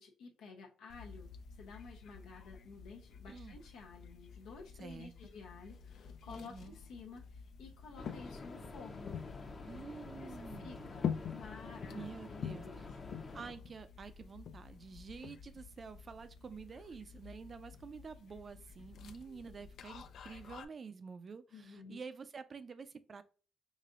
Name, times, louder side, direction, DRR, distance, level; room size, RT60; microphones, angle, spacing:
voice 1, 0.0-9.2 10.2-13.2 19.3-19.5 21.5-22.0, left 4 dB, 85° left, 1 dB, 0.7 m, -53 dB
sound 1, 0.9-20.6, left 7 dB, 65° left, 0.3 m, -47 dB
voice 2, 3.3-3.6 4.8-5.1 6.3-6.8 9.7-10.9 11.9-12.9 13.3-23.2, right 5 dB, 40° right, 12 dB, 0.4 m, -49 dB
sound 2, 8.0-13.5, left 3 dB, 35° left, 0.7 m, -48 dB
4.9 x 2.6 x 2.4 m, 0.38 s
cardioid pair, 90°, 0 cm